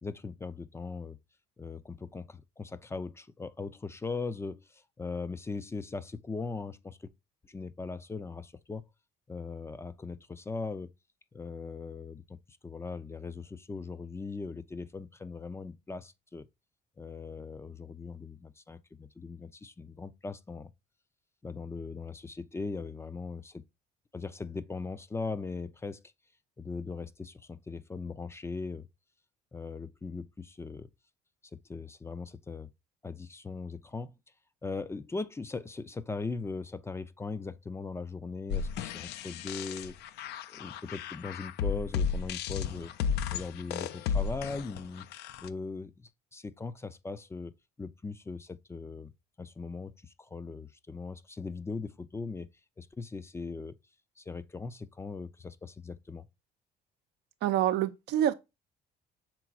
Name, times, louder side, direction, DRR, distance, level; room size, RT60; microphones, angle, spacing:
voice 1, 0.0-1.2 1.6-7.1 7.5-8.9 9.3-10.9 11.3-16.5 17.0-20.7 21.4-23.6 24.1-26.0 26.6-28.9 29.5-30.9 31.5-32.7 33.0-34.2 34.6-40.0 40.5-42.9 43.3-45.1 45.4-49.1 49.4-52.5 52.8-53.8 54.2-56.3, left 4 dB, 15° left, 0.4 m, -39 dB
sound 1, 38.5-45.5, left 6 dB, 75° left, 0.5 m, -34 dB
voice 2, 57.4-58.3, right 11 dB, 85° right, 0.6 m, -26 dB
6.0 x 3.8 x 2.3 m
cardioid pair, 110°, 17 cm